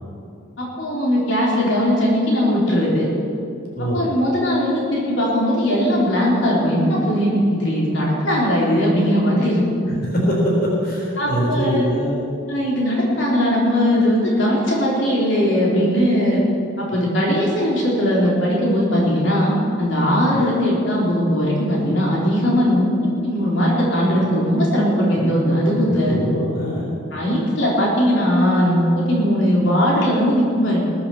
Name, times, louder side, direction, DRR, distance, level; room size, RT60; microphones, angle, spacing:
voice 1, 0.6-3.1 3.9-9.9 11.2-11.9 12.5-16.4 16.8-22.9 23.2-26.1 27.1-30.8, equal, 70° left, -5 dB, 4.0 m, -19 dB
voice 2, 10.0-12.2 20.3-20.4 25.9-26.9, equal, 50° left, -4 dB, 3.7 m, -23 dB
20.5 x 8.6 x 7.2 m, 2.5 s
head